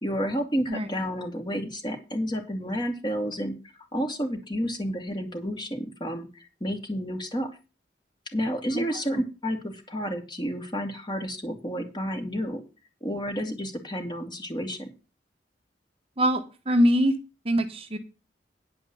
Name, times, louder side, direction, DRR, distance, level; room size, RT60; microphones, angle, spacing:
voice 1, 0.0-3.5 3.9-7.5 8.3-12.6 13.0-14.9, equal, 25° left, 4 dB, 2.5 m, -30 dB
voice 2, 16.2-17.1 17.4-18.0, equal, 35° right, 7 dB, 1.1 m, -23 dB
10.5 x 5.1 x 7.6 m, 0.30 s
head